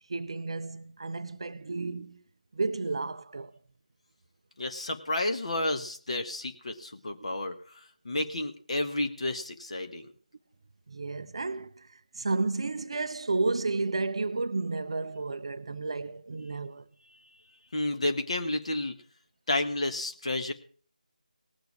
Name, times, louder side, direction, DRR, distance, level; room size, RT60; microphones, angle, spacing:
voice 1, 0.1-2.2 2.5-3.5 7.2-7.3 10.9-16.9, right 3 dB, 40° right, 0.5 m, -32 dB
voice 2, 4.6-10.1 17.7-18.9 19.5-20.5, left 2 dB, 45° left, 1.5 m, -31 dB
19.0 x 6.7 x 4.8 m
figure-of-eight pair, 165°, 5 cm